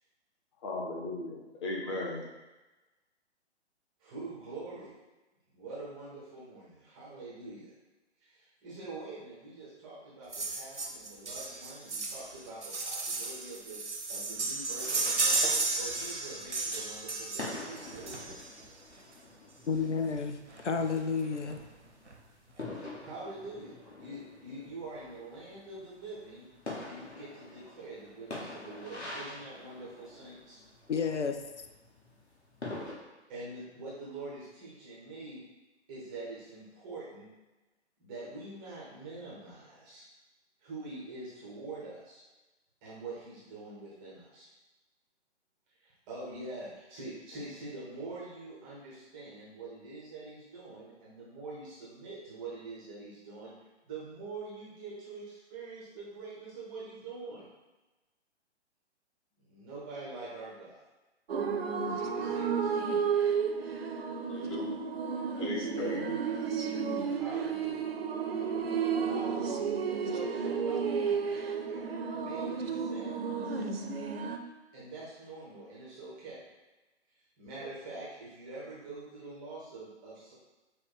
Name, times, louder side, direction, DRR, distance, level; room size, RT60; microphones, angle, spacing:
voice 1, 0.6-2.3 64.3-64.7 65.4-66.2, left 2 dB, 25° left, -1 dB, 0.7 m, -36 dB
voice 2, 4.0-4.9 5.5-7.7 8.2-13.8 14.1-18.3 23.0-26.5 26.8-30.6 33.3-35.4 35.9-37.3 38.0-40.0 40.6-42.2 42.8-44.5 45.8-53.5 53.8-57.4 59.4-60.8 61.9-62.9 67.1-68.0 69.0-73.7 74.7-76.4 77.4-80.3, right 2 dB, 10° right, -8 dB, 0.5 m, -45 dB
sound 1, 10.3-18.6 19.7-19.8 20.2-20.3 20.5-20.6 21.0-21.6 22.1-22.2, right 3 dB, 85° right, 0.8 m, -34 dB
sound 2, 14.8-32.9, left 2 dB, 70° left, 1.4 m, -47 dB
voice 3, 19.7-21.6 30.9-31.4, left 5 dB, 85° left, 7 dB, 0.5 m, -31 dB
sound 3, 61.3-74.4, right 6 dB, 60° right, 0.5 m, -32 dB
5.4 x 2.1 x 4.2 m, 1.1 s
figure-of-eight pair, 125°, 34 cm